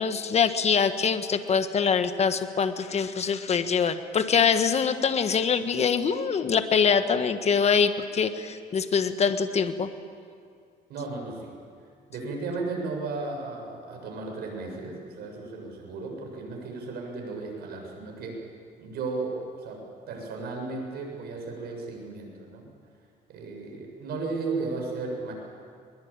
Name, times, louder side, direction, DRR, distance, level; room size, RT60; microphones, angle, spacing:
voice 1, 0.0-9.9, left 6 dB, 40° left, 9 dB, 1.5 m, -24 dB
voice 2, 10.9-11.5 12.1-18.4 18.8-19.8 20.1-22.7 23.3-25.3, right 3 dB, 70° right, 1 dB, 7.1 m, -35 dB
22.0 x 22.0 x 8.9 m, 2.2 s
cardioid pair, 110°, 17 cm